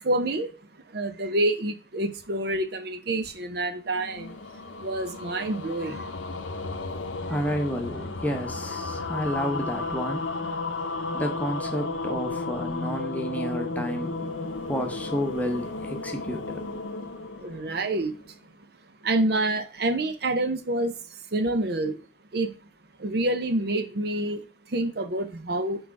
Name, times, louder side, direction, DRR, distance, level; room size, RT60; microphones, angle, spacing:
voice 1, 0.0-0.5 0.9-4.3 4.8-6.0 17.4-18.1 19.0-20.9 21.3-22.0 22.3-22.5 23.0-24.4 24.7-25.8, right 1 dB, 55° right, 0.6 m, -27 dB
sound 1, 3.9-18.3, left 3 dB, 80° left, 0.7 m, -33 dB
voice 2, 7.3-10.3 11.1-14.2 14.6-16.6, equal, 10° left, 1.0 m, -30 dB
6.2 x 4.8 x 4.7 m
head